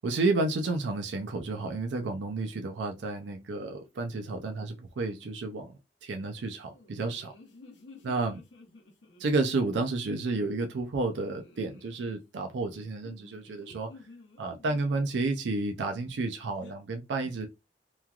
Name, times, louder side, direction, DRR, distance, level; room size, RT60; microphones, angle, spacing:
voice 1, 0.0-5.7 6.0-7.3 8.0-8.4 9.2-13.9 14.4-17.5, right 3 dB, 80° right, 0.4 m, -31 dB
sound 1, 6.6-9.7 11.1-12.2 13.0-15.1 16.5-16.7, left 3 dB, 90° left, 0.7 m, -53 dB
3.0 x 2.3 x 2.3 m
head